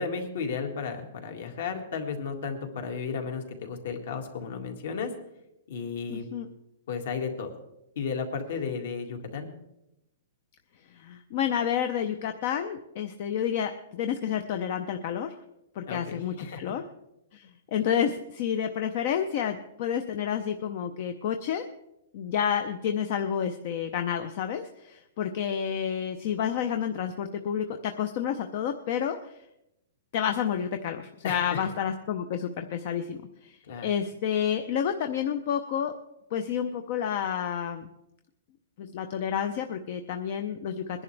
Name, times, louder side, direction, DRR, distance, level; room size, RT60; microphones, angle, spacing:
voice 1, 0.0-5.1 5.7-6.3 6.9-7.5 8.0-9.5 15.9-16.6 31.2-31.7 33.7-33.9, left 5 dB, 55° left, 4 dB, 2.0 m, -34 dB
voice 2, 6.1-6.5 10.9-15.3 15.8-16.8 17.3-21.6 22.1-29.2 30.1-33.6 33.8-35.9 36.3-37.9 38.8-41.0, left 8 dB, 35° left, 7 dB, 0.6 m, -30 dB
21.0 x 11.0 x 3.4 m, 0.87 s
hypercardioid pair, 175°, 0 cm